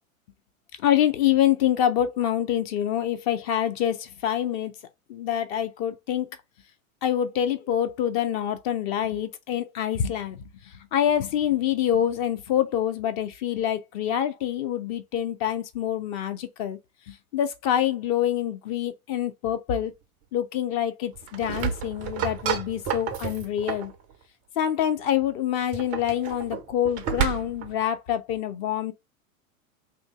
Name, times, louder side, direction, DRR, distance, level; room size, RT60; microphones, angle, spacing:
voice 1, 0.8-4.7 5.1-6.3 7.0-10.4 10.9-16.8 17.1-19.9 20.3-23.9 24.6-28.9, left 10 dB, 35° left, 0.6 m, -26 dB
sound 1, 21.1-23.9 25.6-27.7, right 8 dB, 20° right, 0.4 m, -30 dB
2.7 x 2.6 x 3.5 m
figure-of-eight pair, 90°, 43 cm